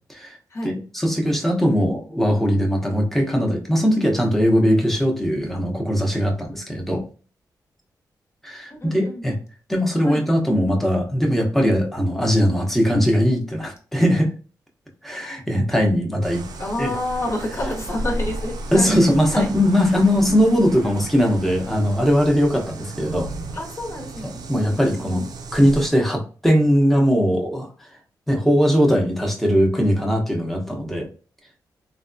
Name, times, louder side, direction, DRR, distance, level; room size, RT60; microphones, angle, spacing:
voice 1, 0.6-7.0 8.4-9.4 9.7-14.3 15.0-16.4 16.8-16.9 18.7-23.3 24.2-27.7 28.3-31.1, equal, 5° left, 1 dB, 0.8 m, -20 dB
voice 2, 8.8-9.2 10.0-10.2 16.6-18.9 19.3-19.5 20.8-20.9 23.5-25.3, left 1 dB, 40° left, 1 dB, 1.1 m, -29 dB
sound 1, 16.2-25.9, right 2 dB, 65° right, 0.5 m, -34 dB
3.3 x 2.3 x 2.5 m, 0.38 s
cardioid pair, 80°, 7 cm